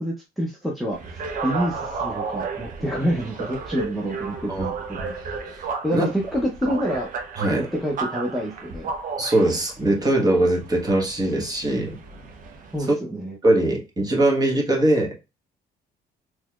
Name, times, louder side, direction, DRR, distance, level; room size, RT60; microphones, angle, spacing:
voice 1, 0.0-4.7 5.8-7.1 7.5-8.9 12.7-13.4, equal, ahead, 0.7 m, -27 dB
sound 1, 0.9-12.8, right 4 dB, 55° right, 0.8 m, -33 dB
voice 2, 7.4-7.7 9.2-12.0 13.4-15.1, right 1 dB, 20° right, 1.3 m, -21 dB
3.9 x 3.1 x 2.3 m
cardioid pair, 110°, 17 cm